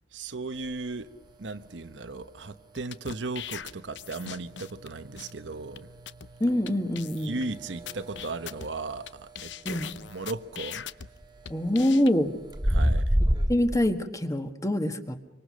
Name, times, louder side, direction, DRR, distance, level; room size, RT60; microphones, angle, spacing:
voice 1, 0.1-1.1 1.4-5.9 7.2-9.9 10.1-10.8 12.7-13.2, right 3 dB, 75° right, 1.0 m, -36 dB
sound 1, 0.5-13.8, equal, 25° right, 1.8 m, -33 dB
sound 2, 2.8-4.9 5.2-5.3 5.8-5.9 6.1-6.3 6.7-6.8 6.9-7.5 7.9-9.1 9.3-11.1 11.4-12.1, left 8 dB, 75° left, 0.7 m, -40 dB
voice 2, 6.4-7.4 9.6-9.9 11.5-12.3 13.5-15.2, left 1 dB, 20° left, 1.4 m, -25 dB
26.0 x 25.0 x 6.3 m
head